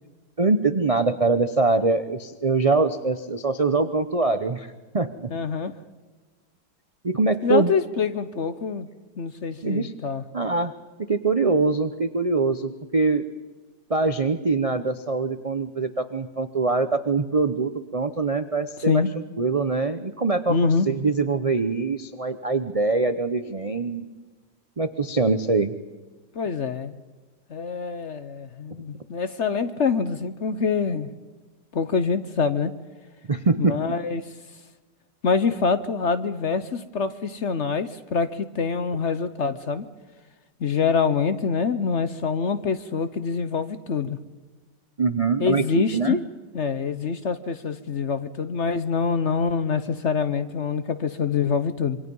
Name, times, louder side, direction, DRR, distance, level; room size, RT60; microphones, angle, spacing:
voice 1, 0.4-5.3 7.0-7.7 9.6-9.9 10.3-10.7 11.1-13.2 13.9-19.0 19.4-24.1 24.8-25.7 33.3-33.8 45.0-46.2, right 3 dB, 65° right, 10 dB, 0.3 m, -23 dB
voice 2, 5.3-5.7 7.4-8.9 9.2-10.2 18.9-19.1 20.5-20.9 26.3-27.0 27.5-31.1 31.7-32.7 33.6-34.3 35.2-39.8 40.6-44.2 45.4-46.2 46.5-52.0, left 5 dB, 50° left, 12 dB, 1.0 m, -25 dB
26.5 x 24.0 x 5.4 m, 1.3 s
omnidirectional pair, 2.0 m